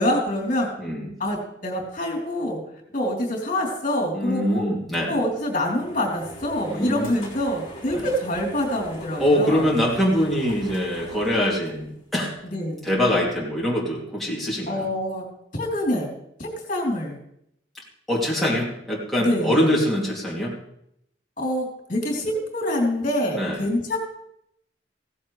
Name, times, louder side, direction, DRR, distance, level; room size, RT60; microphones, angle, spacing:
voice 1, 0.0-0.7 1.2-2.6 2.9-4.7 5.1-9.6 12.5-12.8 14.7-15.3 15.5-16.1 16.4-17.2 19.2-19.7 21.4-24.0, left 1 dB, 45° left, -2 dB, 3.4 m, -25 dB
voice 2, 0.8-1.1 4.1-5.1 6.7-7.2 7.9-8.0 9.2-12.3 12.8-14.9 18.1-20.5 23.3-23.6, equal, ahead, -6 dB, 2.7 m, -23 dB
sound 1, 5.1-12.4, equal, 25° left, 4.9 m, -42 dB
16.0 x 14.5 x 3.3 m, 0.74 s
head